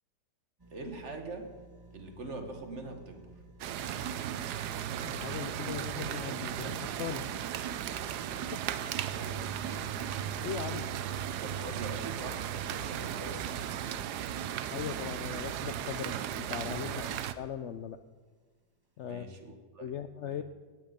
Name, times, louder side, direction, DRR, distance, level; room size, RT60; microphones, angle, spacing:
sound 1, 0.6-17.8 18.3-18.4, right 2 dB, 15° right, 1.2 m, -55 dB
voice 1, 0.7-1.5 1.9-3.3 9.2-9.4 11.3-13.6 16.8-17.1 19.0-19.9 20.2-20.4, right 2 dB, 45° right, 5 dB, 1.6 m, -43 dB
sound 2, 3.6-17.3, right 10 dB, 75° right, 1.2 m, -36 dB
voice 2, 5.0-7.2 8.5-8.6 10.4-10.9 14.7-16.9 17.4-18.0 19.0-19.3 19.8-20.4, left 9 dB, 85° left, 10 dB, 0.6 m, -39 dB
17.5 x 9.3 x 5.2 m, 1.5 s
omnidirectional pair, 1.8 m